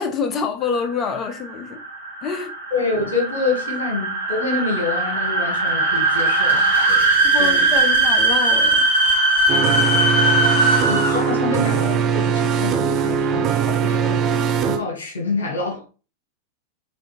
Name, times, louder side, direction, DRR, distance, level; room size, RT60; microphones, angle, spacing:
voice 1, 0.0-1.8 2.2-2.5 7.2-8.9, left 5 dB, 30° left, 0.8 m, -26 dB
sound 1, 0.8-11.5, right 2 dB, 85° right, 1.8 m, -19 dB
voice 2, 2.7-7.0 7.4-7.6 10.9-14.2 14.6-15.8, left 3 dB, 65° left, 2.0 m, -26 dB
sound 2, 9.5-14.8, right 7 dB, 35° right, 0.7 m, -21 dB
6.0 x 2.9 x 2.6 m
figure-of-eight pair, 90°, 0 cm